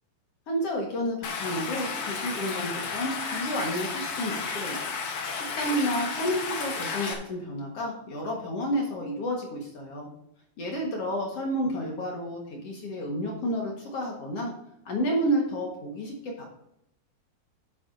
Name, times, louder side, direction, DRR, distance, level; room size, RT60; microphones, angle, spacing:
voice 1, 0.5-4.8 5.3-10.1 10.6-14.5 14.9-16.5, equal, 55° left, -1 dB, 2.0 m, -30 dB
Stream, 1.2-7.1, left 5 dB, 85° left, 1.2 m, -33 dB
11.5 x 8.9 x 2.7 m, 0.78 s
omnidirectional pair, 4.4 m